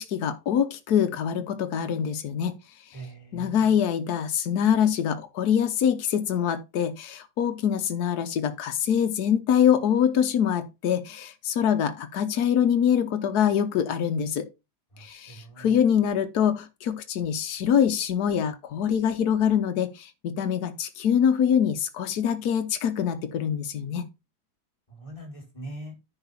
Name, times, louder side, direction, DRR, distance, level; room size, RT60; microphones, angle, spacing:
voice 1, 0.0-2.5 3.3-14.5 15.0-24.1, left 8 dB, 80° left, 1.4 m, -24 dB
voice 2, 2.9-3.6 14.9-15.7 24.9-25.9, right 2 dB, 20° left, 4.5 m, -42 dB
9.9 x 3.9 x 5.7 m
omnidirectional pair, 1.7 m